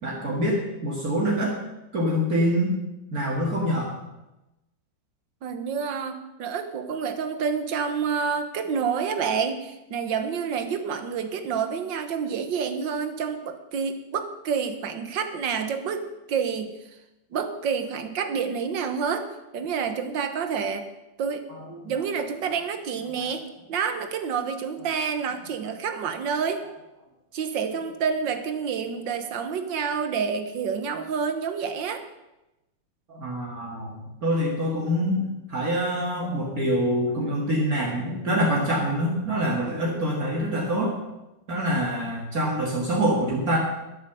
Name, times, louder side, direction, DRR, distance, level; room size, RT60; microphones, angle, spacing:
voice 1, 0.0-1.6 1.9-2.8 3.1-3.9 21.5-21.6 33.1-41.0 41.5-43.6, equal, 50° right, -3 dB, 2.4 m, -25 dB
voice 2, 5.4-16.8 17.3-19.3 19.5-20.9 21.2-21.5 21.8-26.7 27.3-32.0, right 6 dB, 80° right, 8 dB, 1.8 m, -28 dB
12.5 x 8.1 x 6.9 m, 0.96 s
omnidirectional pair, 2.0 m